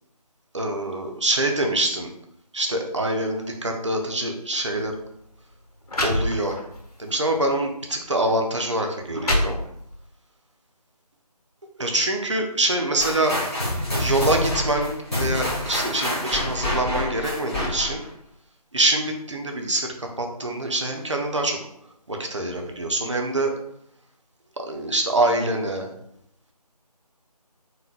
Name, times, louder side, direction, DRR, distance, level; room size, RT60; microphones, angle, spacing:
voice 1, 0.5-2.1 2.5-5.0 6.0-6.6 7.0-9.6 11.8-13.4 14.0-18.0 18.7-21.6 22.1-23.5 24.6-25.9, right 1 dB, 45° right, 3 dB, 0.7 m, -25 dB
sound 1, 4.6-4.8 5.5-5.6 5.9-6.8 7.4-7.5 8.3-8.4 8.9-10.0, left 1 dB, 70° left, 1.0 m, -26 dB
sound 2, 13.0-18.1, left 1 dB, ahead, 0.9 m, -27 dB
4.0 x 4.0 x 2.2 m, 0.73 s
figure-of-eight pair, 165°, 21 cm